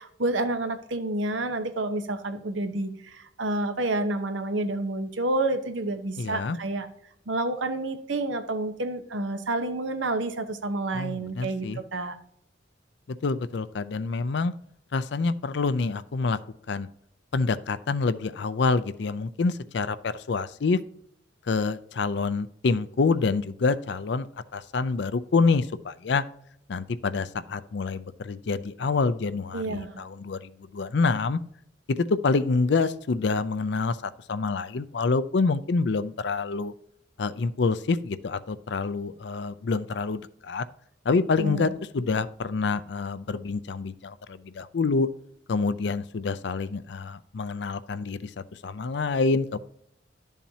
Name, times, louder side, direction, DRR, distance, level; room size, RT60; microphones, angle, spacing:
voice 1, 0.0-6.9 7.3-12.2 29.5-30.0 41.4-41.7, right 2 dB, 85° right, 9 dB, 1.0 m, -29 dB
voice 2, 6.2-6.6 10.9-11.8 13.1-14.5 14.9-16.4 16.7-16.9 17.3-20.8 21.5-24.3 24.5-26.2 26.7-31.4 32.0-36.7 37.2-40.7 41.1-45.1 45.5-48.3 48.6-49.6, left 4 dB, 65° left, 15 dB, 0.5 m, -27 dB
11.5 x 7.2 x 2.8 m, 0.71 s
head